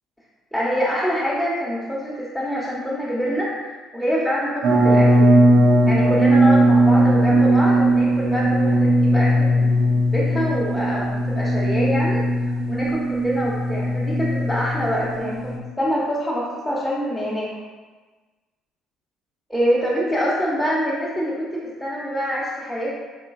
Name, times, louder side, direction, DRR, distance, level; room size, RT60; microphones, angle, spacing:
voice 1, 0.5-5.4 5.9-9.8 10.1-17.5 19.5-23.0, equal, 5° left, -9 dB, 0.9 m, -25 dB
sound 1, 4.6-15.6, right 1 dB, 60° right, 0.6 m, -18 dB
3.8 x 3.0 x 2.5 m, 1.3 s
hypercardioid pair, 60°, 0 cm